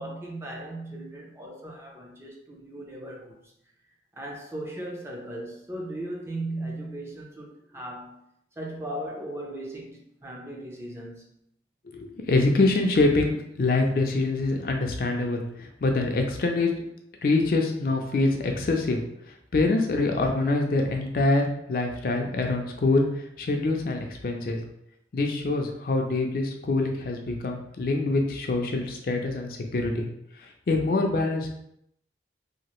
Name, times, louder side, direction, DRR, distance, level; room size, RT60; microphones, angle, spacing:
voice 1, 0.0-3.5 4.1-8.2 8.6-11.3, right 1 dB, 15° right, 0.4 m, -37 dB
voice 2, 11.9-16.7 17.2-19.0 19.5-23.1 23.4-24.6 25.1-30.1 30.4-31.5, left 2 dB, 55° left, 0.4 m, -25 dB
2.8 x 2.4 x 3.0 m
head